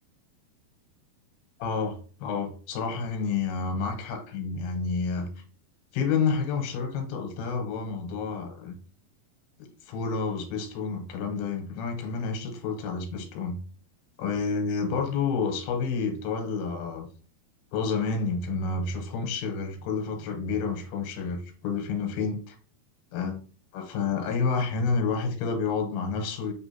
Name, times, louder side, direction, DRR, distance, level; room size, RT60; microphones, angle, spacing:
voice 1, 1.6-5.3 5.9-8.7 9.8-13.6 14.2-17.1 17.7-22.6 23.1-23.4 23.7-26.5, left 5 dB, 85° left, 2.7 m, -29 dB
5.4 x 3.4 x 2.8 m
omnidirectional pair, 4.4 m